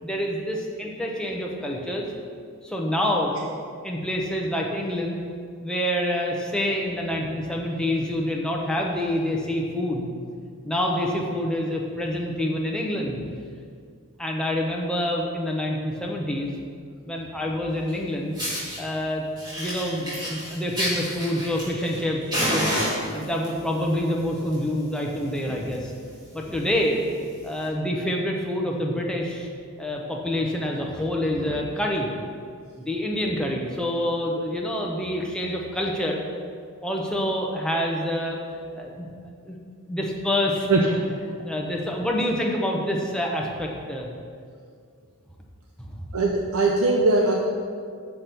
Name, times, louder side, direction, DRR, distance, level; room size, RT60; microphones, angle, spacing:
voice 1, 0.0-2.1 2.6-3.4 3.8-5.2 5.6-10.1 10.6-13.2 14.2-16.5 17.0-18.4 18.8-19.2 19.6-25.9 26.3-27.0 27.4-29.5 29.8-32.1 32.8-36.2 36.8-38.4 38.7-39.1 39.5-39.6 39.9-40.7 41.4-44.1 45.8-46.1, left 1 dB, 5° left, -1 dB, 0.8 m, -27 dB
Fire, 17.9-18.0 18.4-18.8 19.4-22.0 22.3-23.5 24.3-24.6 24.9-25.0 25.4-25.5 25.7-25.9 26.5-26.6 27.5-27.6, equal, 20° right, 1.7 m, -28 dB
voice 2, 46.1-47.3, right 3 dB, 75° right, 0 dB, 0.7 m, -20 dB
6.0 x 5.9 x 6.7 m, 2.2 s
head